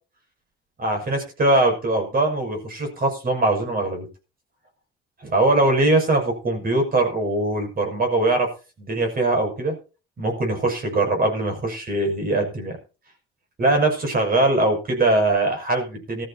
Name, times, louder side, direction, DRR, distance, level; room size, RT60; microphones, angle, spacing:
voice 1, 0.8-4.1 5.2-8.5 8.8-9.8 10.2-12.8 13.6-16.2, right 2 dB, 45° right, 3 dB, 6.5 m, -21 dB
19.0 x 14.0 x 2.8 m, 0.33 s
cardioid pair, 90°, 20 cm